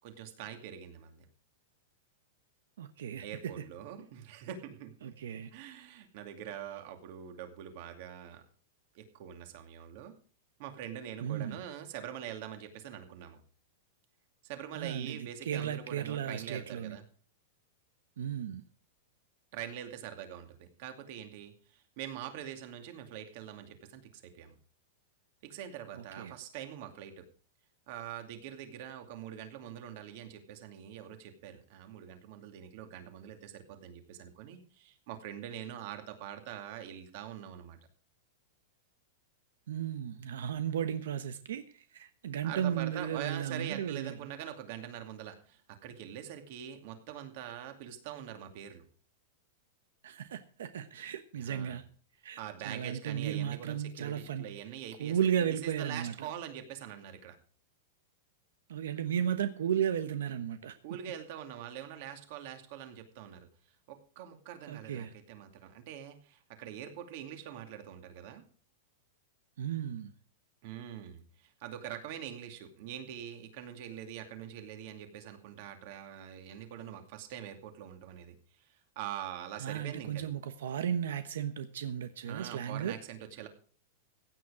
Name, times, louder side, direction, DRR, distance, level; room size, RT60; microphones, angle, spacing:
voice 1, 0.0-1.3 3.2-5.1 5.5-8.4 8.9-10.1 10.6-13.4 14.4-17.0 19.5-24.5 25.4-27.2 27.9-37.8 42.4-48.8 51.4-51.8 52.4-55.2 55.6-57.4 60.8-63.5 63.9-68.4 70.6-78.7 79.0-80.3 82.3-83.5, right 10 dB, 40° right, 7 dB, 2.4 m, -44 dB
voice 2, 2.8-3.6 5.0-5.5 11.2-11.6 14.7-17.0 18.2-18.6 25.9-26.3 39.7-44.3 50.0-51.8 52.2-54.5 55.0-56.3 58.7-61.0 64.7-65.1 69.6-70.1 79.6-83.0, right 9 dB, 85° right, 10 dB, 1.1 m, -35 dB
16.0 x 9.1 x 4.9 m, 0.43 s
supercardioid pair, 175°, 0 cm